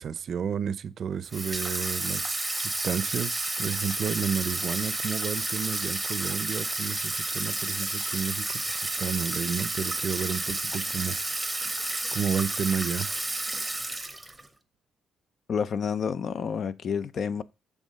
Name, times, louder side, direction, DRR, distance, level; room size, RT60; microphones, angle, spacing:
voice 1, 0.0-11.2 12.1-13.2, right 7 dB, 55° right, 0.5 m, -31 dB
Water tap faucet / Sink (filling or washing), 1.3-14.5, right 2 dB, 10° right, 0.9 m, -31 dB
voice 2, 15.5-17.4, left 6 dB, 55° left, 0.5 m, -29 dB
7.4 x 3.5 x 5.1 m
cardioid pair, 90°, 0 cm